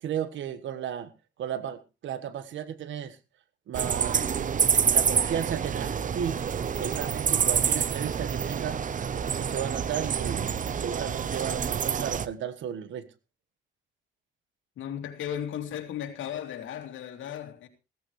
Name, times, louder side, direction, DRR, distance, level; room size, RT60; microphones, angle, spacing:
voice 1, 0.0-1.1 1.4-3.2 3.7-4.3 4.9-6.4 6.7-8.8 9.3-13.1, right 9 dB, 75° right, 1.4 m, -34 dB
sound 1, 3.7-12.3, right 7 dB, 40° right, 0.8 m, -27 dB
voice 2, 14.8-17.7, left 9 dB, 80° left, 2.8 m, -35 dB
16.0 x 14.5 x 3.2 m
cardioid pair, 90°, 20 cm